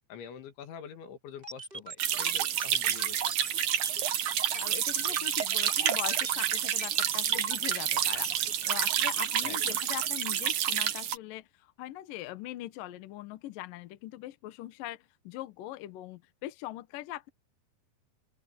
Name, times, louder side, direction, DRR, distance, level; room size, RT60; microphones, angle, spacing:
voice 1, 0.1-3.3 9.4-9.8, left 8 dB, 90° left, 4.7 m, -46 dB
sound 1, 1.4-10.5, right 3 dB, 15° right, 2.4 m, -42 dB
sound 2, 2.0-11.2, right 10 dB, 60° right, 2.2 m, -29 dB
voice 2, 4.5-8.3 8.7-17.3, left 15 dB, 70° left, 2.3 m, -41 dB
open air
omnidirectional pair, 5.1 m